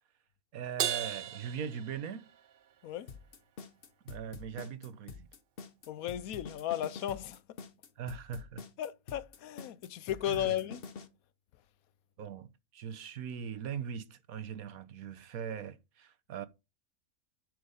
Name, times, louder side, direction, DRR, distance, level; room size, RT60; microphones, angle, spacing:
voice 1, 0.5-2.3 4.0-5.3 8.0-8.6 10.3-10.5 12.2-16.5, right 8 dB, 80° right, 1.3 m, -40 dB
Crash cymbal, 0.8-2.5, right 9 dB, 60° right, 0.6 m, -35 dB
sound 1, 3.1-11.1, left 5 dB, 45° left, 1.0 m, -46 dB
voice 2, 5.9-7.4 8.8-10.9, left 11 dB, 80° left, 1.1 m, -35 dB
10.5 x 4.9 x 5.2 m
omnidirectional pair, 1.5 m